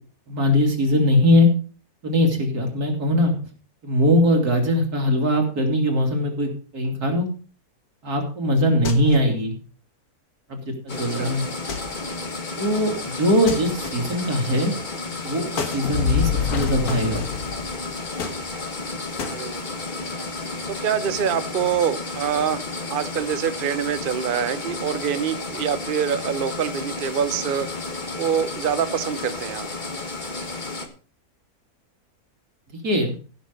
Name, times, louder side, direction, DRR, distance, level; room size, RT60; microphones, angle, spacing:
voice 1, 0.3-1.5 2.0-3.3 3.8-7.3 8.0-9.6 10.5-11.5 12.6-14.7 15.2-17.2 32.8-33.2, left 1 dB, 90° right, 2 dB, 3.2 m, -21 dB
sound 1, 8.8-9.4 11.7-12.2 13.5-14.3 15.6-15.9 16.9-17.5 18.2-18.8 19.2-19.4, left 5 dB, 85° left, 1.9 m, -33 dB
sound 2, 10.9-30.9, left 3 dB, 30° left, 1.5 m, -32 dB
voice 2, 10.9-11.4 19.2-19.7 20.7-22.6 22.9-27.7 28.2-29.7, right 8 dB, 45° right, 12 dB, 0.8 m, -25 dB
Fire, 15.8-18.3, left 8 dB, 65° left, 1.4 m, -26 dB
15.5 x 6.4 x 5.2 m, 0.37 s
omnidirectional pair, 1.6 m